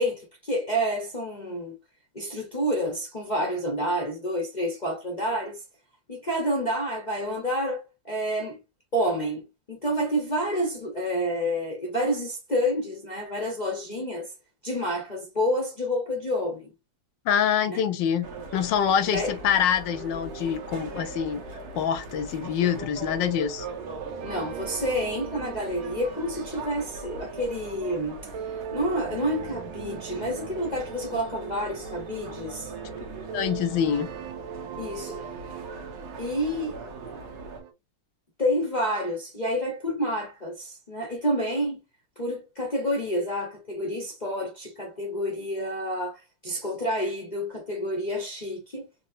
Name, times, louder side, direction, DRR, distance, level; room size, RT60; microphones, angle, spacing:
voice 1, 0.0-1.7 2.1-5.6 6.1-8.6 8.9-14.3 14.6-16.7 17.7-17.8 19.1-19.4 24.2-32.7 34.8-35.2 36.2-36.8 38.4-41.8 42.2-48.9, equal, 35° left, 0.7 m, -29 dB
voice 2, 17.2-18.3 18.5-21.4 21.7-23.7 33.3-34.1, left 8 dB, 75° left, 1.3 m, -25 dB
sound 1, 18.2-37.6, right 3 dB, 60° right, 1.4 m, -41 dB
sound 2, 19.9-37.7, right 8 dB, 85° right, 1.5 m, -41 dB
4.3 x 3.0 x 2.6 m
omnidirectional pair, 2.1 m